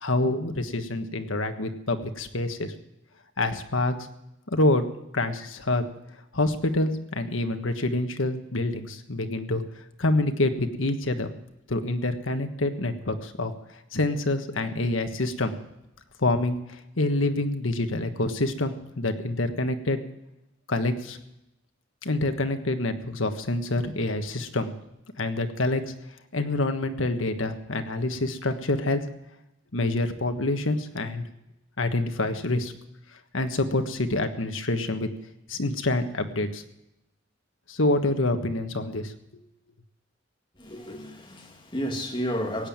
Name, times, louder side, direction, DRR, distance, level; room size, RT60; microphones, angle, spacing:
voice 1, 0.0-2.7 3.4-4.0 4.5-4.9 5.1-5.8 6.3-9.6 10.0-11.3 11.7-13.5 13.9-15.5 16.2-20.0 20.7-21.2 22.0-24.7 25.2-25.9 26.3-29.0 29.7-31.2 31.8-32.7 33.3-35.1 35.5-36.6 37.7-39.1, left 2 dB, 90° left, 1.5 m, -26 dB
voice 2, 40.6-42.7, equal, 25° left, 2.3 m, -32 dB
16.5 x 9.2 x 8.8 m
head